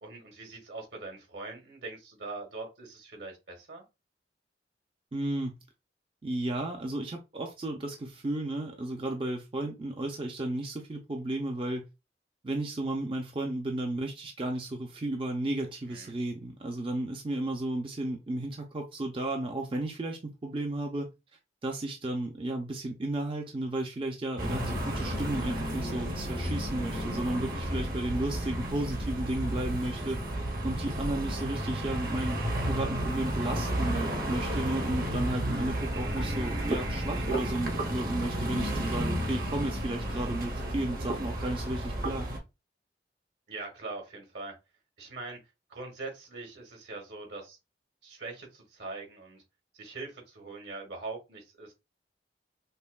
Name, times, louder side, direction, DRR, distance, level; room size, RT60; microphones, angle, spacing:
voice 1, 0.0-3.8 15.9-16.1 43.5-44.5 45.0-45.4 45.7-47.6 48.0-49.4 49.8-51.7, right 3 dB, 75° right, 1.4 m, -42 dB
voice 2, 5.1-5.6 6.2-11.9 12.4-21.1 21.6-30.2 30.6-42.3, right 1 dB, 30° right, 0.5 m, -33 dB
sound 1, 24.4-42.4, right 1 dB, 55° right, 1.0 m, -32 dB
5.4 x 2.1 x 2.3 m
head